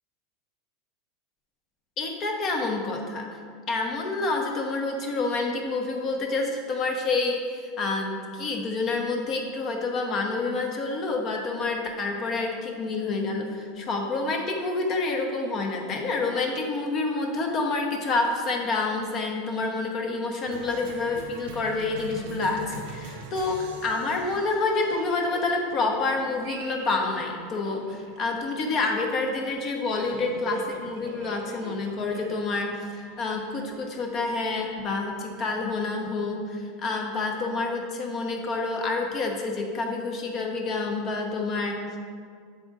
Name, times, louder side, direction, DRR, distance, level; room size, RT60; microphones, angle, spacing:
voice 1, 2.0-3.3 3.7-42.0, left 3 dB, 40° left, 2 dB, 0.9 m, -28 dB
Cheering, 20.5-35.6, right 4 dB, 80° right, 0.7 m, -43 dB
7.6 x 3.7 x 3.9 m, 2.1 s
supercardioid pair, 130°, 0 cm